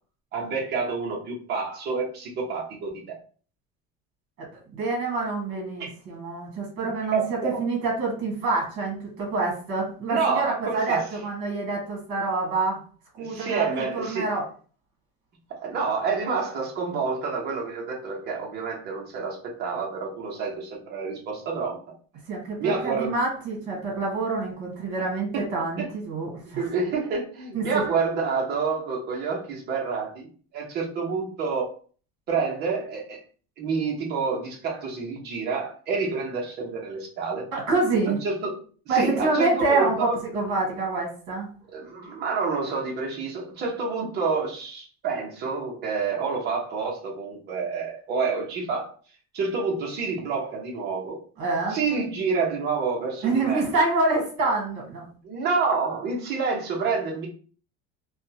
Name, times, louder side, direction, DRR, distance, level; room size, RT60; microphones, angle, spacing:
voice 1, 0.3-3.2 5.8-5.9 7.1-7.6 10.1-11.0 13.2-14.3 15.5-21.8 22.6-23.1 25.3-25.5 25.8-25.9 26.6-30.3 30.5-31.7 32.3-33.2 33.6-37.4 38.1-38.6 38.9-40.2 41.7-48.9 49.3-51.2 51.7-53.7 55.2-57.3, right 4 dB, 35° right, -2 dB, 0.9 m, -28 dB
voice 2, 4.7-12.8 13.1-13.6 13.9-14.4 22.3-26.6 27.5-27.8 37.5-38.2 38.9-41.5 51.4-51.8 53.2-55.1, right 3 dB, 50° right, -1 dB, 1.7 m, -26 dB
3.6 x 2.3 x 2.8 m, 0.41 s
cardioid pair, 180°, 30 cm